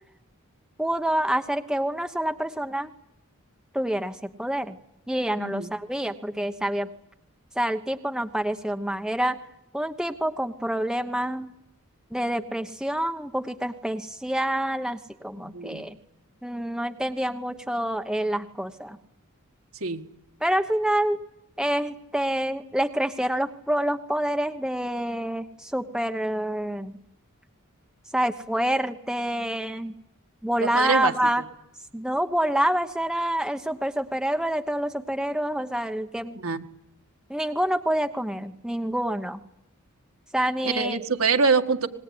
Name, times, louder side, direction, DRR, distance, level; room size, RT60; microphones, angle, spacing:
voice 1, 0.8-2.9 3.7-4.8 5.1-6.9 7.6-9.4 9.7-11.5 12.1-16.0 16.4-19.0 20.4-21.2 21.6-27.0 28.1-30.0 30.4-31.4 31.9-36.4 37.3-39.4 40.3-41.0, right 1 dB, 5° right, 7 dB, 1.1 m, -27 dB
voice 2, 5.4-5.7 15.4-15.8 19.8-20.0 30.6-31.3 36.3-36.6 40.6-41.9, right 4 dB, 70° right, 5 dB, 2.0 m, -25 dB
25.5 x 20.5 x 9.8 m, 0.83 s
head